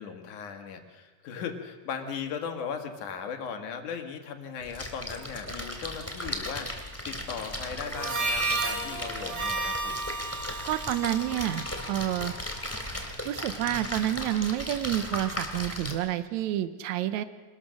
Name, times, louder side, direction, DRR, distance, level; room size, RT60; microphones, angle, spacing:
voice 1, 0.0-10.0, left 6 dB, 90° left, 5 dB, 3.2 m, -38 dB
Splash splatter, 4.6-15.9, left 1 dB, 5° left, 2.5 m, -37 dB
Harmonica, 7.9-12.5, right 3 dB, 60° right, 4.2 m, -33 dB
voice 2, 10.7-12.3 13.3-17.2, right 12 dB, 75° right, 11 dB, 2.2 m, -29 dB
26.0 x 20.5 x 6.4 m, 1.4 s
omnidirectional pair, 3.4 m